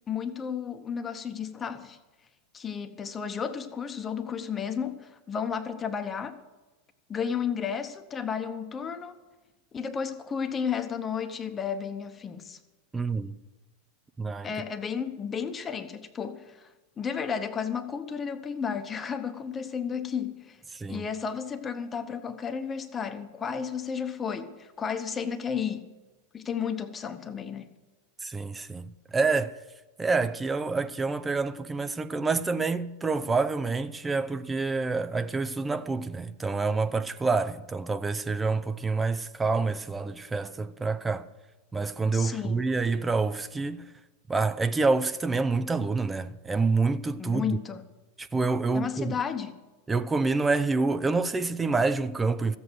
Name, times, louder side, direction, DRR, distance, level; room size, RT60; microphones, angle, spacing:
voice 1, 0.1-2.0 2.5-6.4 7.1-9.1 9.7-12.6 14.4-16.7 17.0-20.6 20.9-25.9 26.3-27.7 42.1-42.7 47.2-47.8 48.7-49.6, left 7 dB, 25° left, 1.0 m, -33 dB
voice 2, 12.9-13.4 14.2-14.5 20.7-21.1 28.2-29.5 30.0-41.3 41.7-43.8 44.3-47.6 48.2-49.1 49.9-52.6, right 4 dB, 15° right, 0.5 m, -27 dB
14.5 x 8.1 x 7.9 m
figure-of-eight pair, 85°, 0 cm